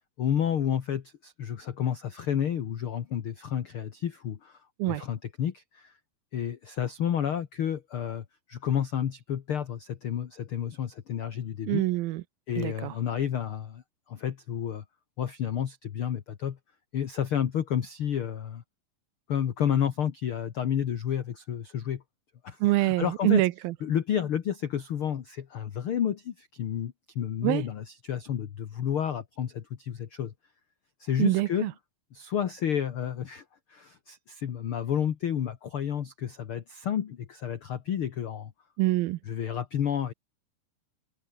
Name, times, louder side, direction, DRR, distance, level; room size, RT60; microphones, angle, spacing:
voice 1, 0.2-4.6 4.9-5.9 6.3-11.8 12.5-13.8 14.1-14.8 15.2-16.6 16.9-18.6 19.3-22.0 22.4-23.4 23.8-30.3 31.0-31.7 32.1-33.4 33.7-38.5 39.3-40.1, left 9 dB, 55° left, 1.5 m, -30 dB
voice 2, 11.7-12.2 12.6-12.9 22.6-23.7 27.4-27.6 31.2-31.7 38.8-39.2, right 18 dB, 85° right, 2.6 m, -25 dB
omnidirectional pair, 4.2 m